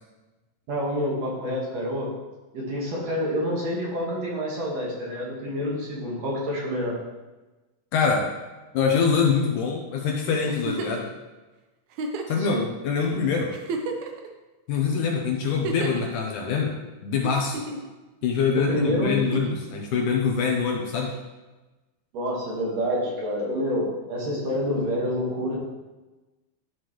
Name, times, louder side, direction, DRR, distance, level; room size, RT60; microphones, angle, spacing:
voice 1, 0.7-2.1 2.5-6.9 12.4-12.6 18.5-19.6 22.1-25.6, equal, 55° right, -4 dB, 2.6 m, -27 dB
voice 2, 7.9-8.3 8.7-11.1 12.3-13.5 14.7-16.7 17.0-17.6 18.2-21.1, left 5 dB, 75° left, 1 dB, 2.1 m, -24 dB
Giggle, 10.5-11.1 11.9-12.4 13.1-13.2 13.5-14.3 15.4-16.1 17.2-17.9 19.2-19.6 21.1-21.2, right 3 dB, 75° right, 1.7 m, -32 dB
13.0 x 6.0 x 3.1 m, 1.1 s
omnidirectional pair, 4.1 m